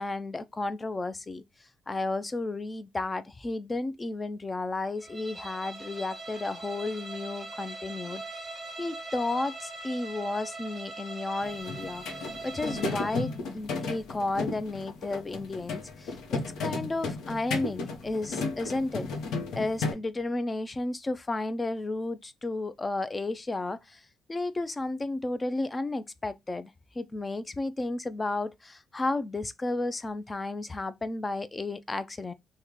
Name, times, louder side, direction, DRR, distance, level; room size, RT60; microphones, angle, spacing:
voice 1, 0.0-1.4 1.9-8.2 8.8-12.0 12.4-19.1 19.6-24.0 24.3-26.7 27.0-32.3, left 2 dB, 25° left, 0.4 m, -33 dB
Bowed string instrument, 5.0-13.4, right 2 dB, 15° right, 0.9 m, -41 dB
sound 1, 11.4-19.9, left 3 dB, 80° left, 0.8 m, -34 dB
3.0 x 2.1 x 3.6 m
cardioid pair, 90°, 0 cm